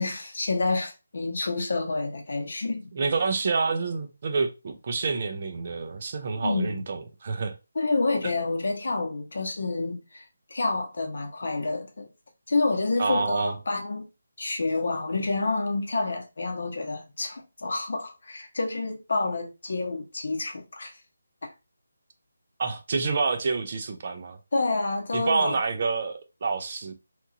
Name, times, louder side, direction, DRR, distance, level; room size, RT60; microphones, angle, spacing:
voice 1, 0.0-2.9 6.4-6.8 7.7-12.1 12.5-14.0 14.4-21.0 21.4-21.5 24.5-25.6, left 3 dB, 55° left, 0.8 m, -28 dB
voice 2, 2.9-7.5 13.0-13.5 22.6-24.4 25.1-26.9, right 4 dB, 35° right, 0.3 m, -28 dB
2.8 x 2.3 x 2.5 m
figure-of-eight pair, 175°, 0 cm